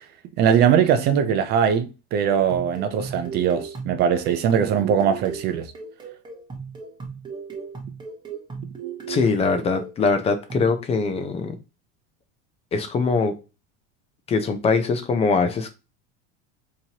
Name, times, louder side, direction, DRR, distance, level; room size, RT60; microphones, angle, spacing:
voice 1, 0.4-5.7, right 8 dB, 35° right, 0.4 m, -21 dB
sound 1, 2.3-10.8, right 6 dB, 15° right, 0.9 m, -37 dB
voice 2, 9.1-11.5 12.7-13.4 14.3-15.7, left 4 dB, 20° left, 0.5 m, -22 dB
4.3 x 2.9 x 2.8 m
supercardioid pair, 150°, 30 cm